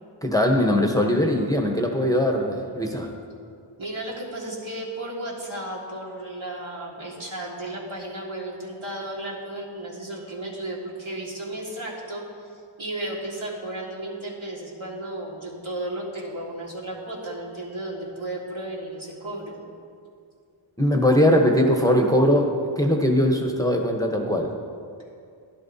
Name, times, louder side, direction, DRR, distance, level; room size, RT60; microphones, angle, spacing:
voice 1, 0.2-3.1 20.8-24.5, left 1 dB, 5° left, 1 dB, 0.9 m, -21 dB
voice 2, 3.8-19.6, right 1 dB, 70° right, -4 dB, 1.9 m, -34 dB
12.0 x 10.5 x 2.7 m, 2.3 s
wide cardioid pair, 50°, 50 cm